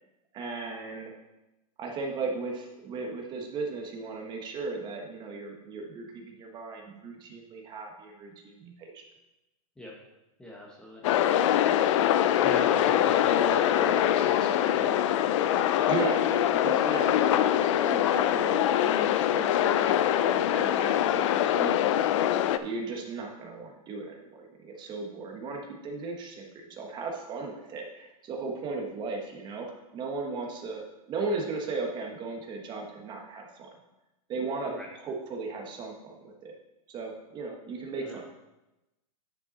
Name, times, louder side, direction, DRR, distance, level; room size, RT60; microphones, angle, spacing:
voice 1, 0.3-1.1 1.8-9.0 15.9-21.8 22.6-29.7 29.9-33.7 34.3-36.5 36.9-38.2, right 3 dB, 25° right, 1 dB, 1.3 m, -36 dB
voice 2, 10.4-11.0 12.4-15.4 34.7-34.9 38.0-38.2, left 1 dB, 5° left, -3 dB, 0.9 m, -41 dB
sound 1, 11.0-22.6, left 11 dB, 55° left, 0.5 m, -24 dB
9.6 x 5.5 x 4.1 m, 0.99 s
supercardioid pair, 155°, 19 cm